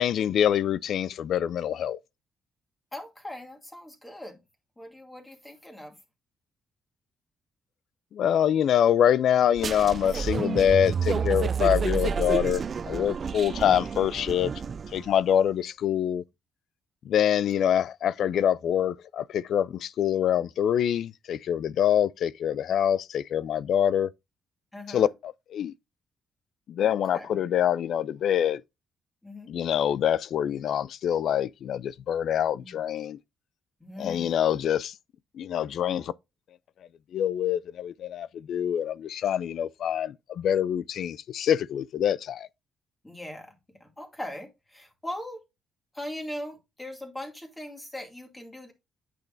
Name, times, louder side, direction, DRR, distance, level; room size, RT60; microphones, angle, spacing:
voice 1, 0.0-2.0 8.1-14.5 14.9-16.2 17.0-24.1 24.9-25.7 26.7-28.6 29.5-33.2 34.0-34.9 35.3-36.1 37.1-42.5, left 9 dB, 70° left, 0.3 m, -25 dB
voice 2, 2.9-4.4 4.8-6.0 17.4-17.5 24.7-25.1 26.8-27.5 29.2-29.5 32.6-32.8 33.8-34.5 43.0-43.5 43.8-45.4 45.9-48.7, left 1 dB, 15° left, 2.4 m, -40 dB
sound 1, 9.6-15.1, right 6 dB, 45° right, 0.3 m, -30 dB
8.9 x 6.0 x 2.6 m
cardioid pair, 90°, 0 cm